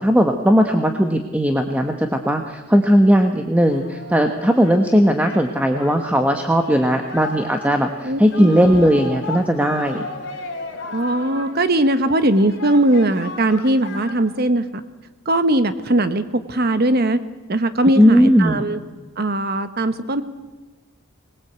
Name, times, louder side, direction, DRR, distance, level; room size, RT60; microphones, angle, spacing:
voice 1, 0.0-10.1 18.0-18.6, equal, 5° right, 4 dB, 1.2 m, -17 dB
Singing, 3.7-14.7, left 3 dB, 55° left, 3.6 m, -36 dB
voice 2, 8.0-8.6 10.9-14.7 15.3-17.2 17.5-18.8 19.2-20.2, right 1 dB, 45° right, 11 dB, 1.0 m, -19 dB
24.0 x 20.5 x 8.2 m, 1.3 s
head